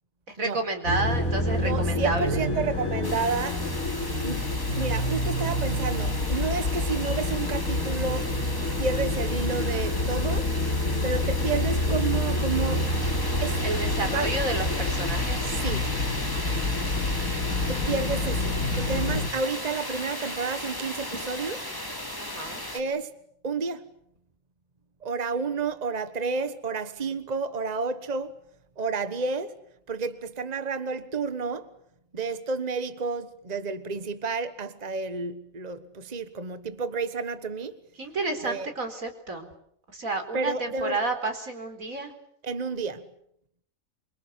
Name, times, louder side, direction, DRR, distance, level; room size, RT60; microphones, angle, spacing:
voice 1, 0.3-2.5 13.6-15.6 22.2-22.6 38.0-39.5 39.9-42.1, right 2 dB, 90° right, 4.6 m, -31 dB
sound 1, 0.8-19.3, left 1 dB, 80° left, 3.5 m, -27 dB
voice 2, 1.6-3.6 4.2-4.4 4.8-8.4 8.8-10.5 11.0-12.9 13.4-13.6 14.1-14.3 15.5-15.9 17.7-21.7 22.7-23.1 23.4-23.9 25.0-28.4 28.8-29.5 29.9-31.7 32.1-37.8 38.4-38.7 40.3-41.0 42.4-43.1, right 4 dB, 30° right, 1.4 m, -30 dB
sound 2, 3.0-22.8, left 1 dB, 15° left, 3.0 m, -36 dB
27.0 x 25.0 x 8.2 m
omnidirectional pair, 1.4 m